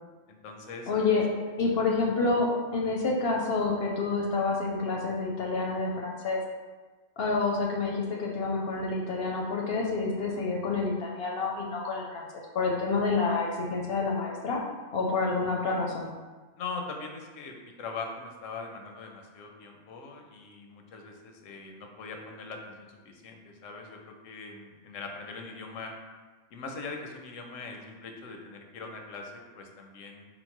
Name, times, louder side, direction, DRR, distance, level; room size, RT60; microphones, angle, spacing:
voice 1, 0.3-0.9 16.6-25.9 26.5-30.3, left 4 dB, 90° left, 3 dB, 1.0 m, -41 dB
voice 2, 0.9-1.2 1.6-6.4 7.2-12.2 12.5-14.6 14.9-16.1, left 3 dB, 65° left, -1 dB, 0.7 m, -28 dB
3.8 x 2.1 x 4.4 m, 1.3 s
omnidirectional pair, 1.3 m